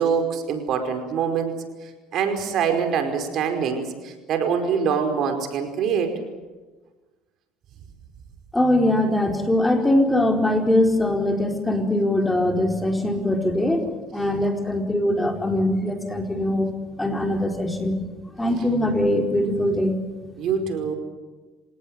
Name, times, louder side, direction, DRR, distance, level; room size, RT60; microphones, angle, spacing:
voice 1, 0.0-1.5 1.8-6.2 20.4-20.9, right 6 dB, 55° right, 6 dB, 5.0 m, -24 dB
voice 2, 8.5-13.9 14.1-16.7 17.0-18.0 18.4-20.0, left 1 dB, 10° left, 4 dB, 4.5 m, -22 dB
27.5 x 18.0 x 9.4 m, 1.2 s
supercardioid pair, 90°, 0 cm